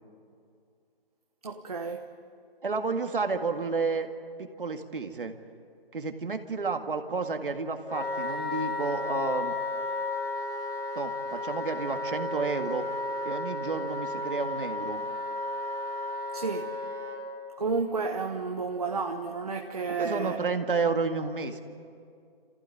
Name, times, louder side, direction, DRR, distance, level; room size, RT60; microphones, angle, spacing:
voice 1, 1.4-2.1 16.3-16.7 17.6-20.5, right 4 dB, 40° right, 3 dB, 1.1 m, -31 dB
voice 2, 2.6-4.1 4.4-5.3 5.9-9.6 10.9-12.9 13.2-15.0 20.0-21.6, right 4 dB, 65° right, 6 dB, 2.0 m, -31 dB
Wind instrument woodwind instrument, 7.9-17.2, left 2 dB, 80° left, 7.1 m, -33 dB
28.5 x 15.5 x 9.8 m, 2.4 s
hypercardioid pair, 180°, 29 cm